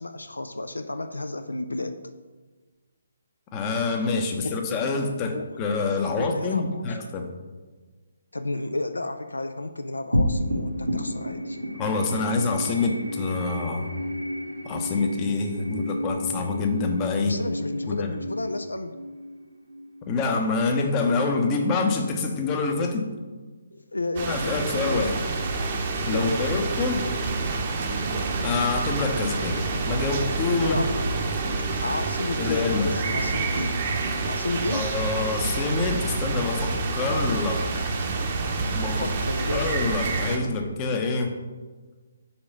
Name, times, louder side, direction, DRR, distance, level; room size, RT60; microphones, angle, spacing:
voice 1, 0.0-2.0 4.4-4.6 5.3-5.4 6.2-6.9 8.3-11.6 17.2-19.0 23.7-25.2 26.1-26.6 30.6-31.0 31.8-33.8 34.2-34.9 39.0-39.7, left 2 dB, 75° left, 8 dB, 0.4 m, -32 dB
voice 2, 3.5-7.3 11.8-13.9 14.6-17.4 17.9-18.1 20.1-23.0 24.3-25.2 26.0-27.0 28.4-30.8 32.4-32.9 34.7-37.7 38.7-39.1 39.5-41.3, left 3 dB, 20° left, 3 dB, 0.7 m, -26 dB
sound 1, 10.1-20.8, equal, 80° right, 1.2 m, -31 dB
sound 2, 24.2-40.4, right 3 dB, 35° right, 0.8 m, -28 dB
4.7 x 4.4 x 5.3 m, 1.3 s
figure-of-eight pair, 140°, 0 cm